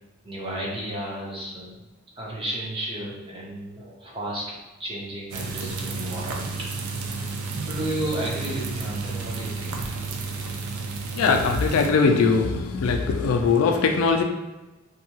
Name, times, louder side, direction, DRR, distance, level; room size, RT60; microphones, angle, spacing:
voice 1, 0.2-1.8 2.2-4.4 4.8-6.5 6.9-7.1 7.6-9.9, right 1 dB, 25° right, -4 dB, 0.6 m, -33 dB
sound 1, 5.3-11.9, right 4 dB, 70° right, 0.4 m, -32 dB
voice 2, 11.2-14.2, left 4 dB, 70° left, 4 dB, 0.3 m, -21 dB
2.7 x 2.3 x 2.8 m, 1.1 s
head